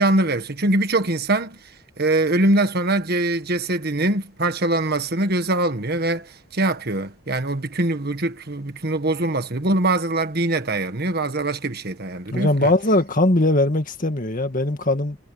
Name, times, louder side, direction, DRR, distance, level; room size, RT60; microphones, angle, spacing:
voice 1, 0.0-1.6 2.0-12.7, right 2 dB, 45° right, 1.6 m, -22 dB
voice 2, 12.3-15.2, left 1 dB, 40° left, 2.0 m, -20 dB
head